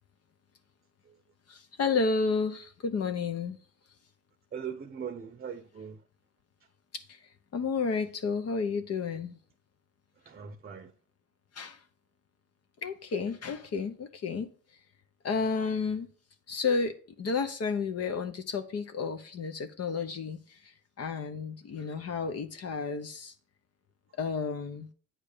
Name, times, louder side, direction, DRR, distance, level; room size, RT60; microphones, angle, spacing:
voice 1, 1.5-3.6 6.9-7.2 7.5-9.4 11.5-11.8 12.8-14.5 15.2-16.1 16.5-20.7 21.0-23.3 24.2-24.9, left 5 dB, 55° left, 0.8 m, -31 dB
voice 2, 4.5-6.0 10.3-10.9, right 7 dB, 30° right, 0.7 m, -40 dB
8.9 x 3.3 x 6.6 m
cardioid pair, 90°, 30 cm